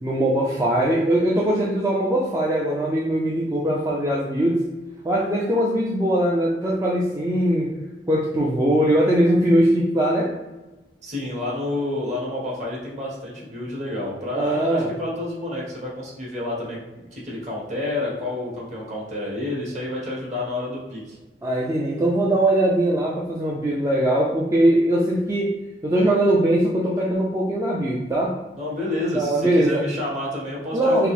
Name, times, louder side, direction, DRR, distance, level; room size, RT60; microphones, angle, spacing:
voice 1, 0.0-4.6 5.0-7.7 8.1-10.3 14.3-14.9 21.4-25.6 25.8-28.3 29.1-29.9 30.7-31.1, right 1 dB, 15° right, -4 dB, 0.4 m, -21 dB
voice 2, 11.0-21.2 28.5-31.1, left 2 dB, 40° right, -5 dB, 1.5 m, -29 dB
5.6 x 2.0 x 3.3 m, 1.1 s
head